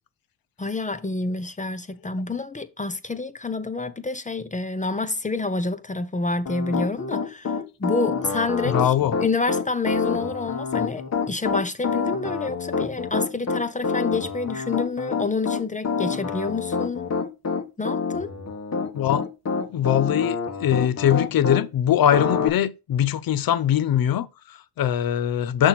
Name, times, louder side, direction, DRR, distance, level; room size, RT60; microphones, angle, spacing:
voice 1, 0.6-8.9 9.2-17.1 17.8-18.4, left 3 dB, 20° left, 0.8 m, -28 dB
Piano, 6.5-21.6 22.1-22.5, left 5 dB, 40° left, 1.5 m, -27 dB
voice 2, 8.6-9.1 18.9-19.2 19.7-25.7, left 10 dB, 60° left, 0.8 m, -22 dB
6.2 x 4.4 x 4.1 m
cardioid pair, 80°, 40 cm